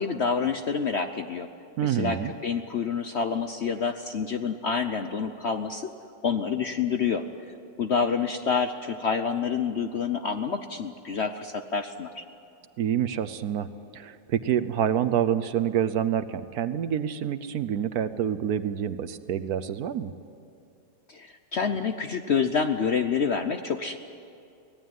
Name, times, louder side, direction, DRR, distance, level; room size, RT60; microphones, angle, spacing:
voice 1, 0.0-1.5 1.8-5.9 6.2-7.2 7.8-12.2 21.1-24.0, left 6 dB, 55° left, 8 dB, 0.8 m, -28 dB
voice 2, 1.8-2.3 12.8-20.1, right 9 dB, 65° right, 11 dB, 1.2 m, -27 dB
24.0 x 17.5 x 9.4 m, 2.6 s
omnidirectional pair, 1.9 m